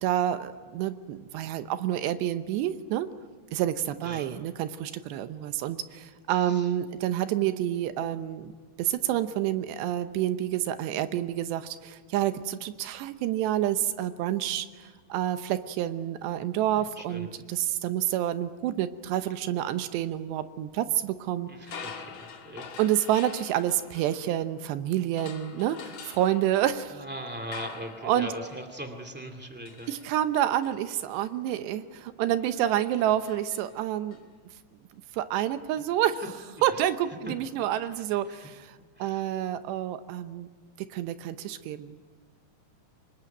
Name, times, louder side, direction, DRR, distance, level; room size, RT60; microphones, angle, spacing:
voice 1, 0.0-3.1 3.5-8.5 8.8-21.8 22.8-27.0 28.0-28.3 29.9-34.2 35.1-36.3 36.6-40.5 40.9-41.9, right 12 dB, 85° right, 11 dB, 3.1 m, -28 dB
voice 2, 4.0-4.3 6.4-6.7 16.7-17.3 21.5-22.7 27.0-29.9 36.8-36.9 37.3-37.4 38.3-38.5 39.0-39.3, equal, 10° right, 3 dB, 0.5 m, -40 dB
sound 1, 21.6-24.7 25.2-34.2, left 6 dB, 50° left, 2.9 m, -47 dB
25.5 x 21.5 x 9.1 m, 1.5 s
omnidirectional pair, 4.9 m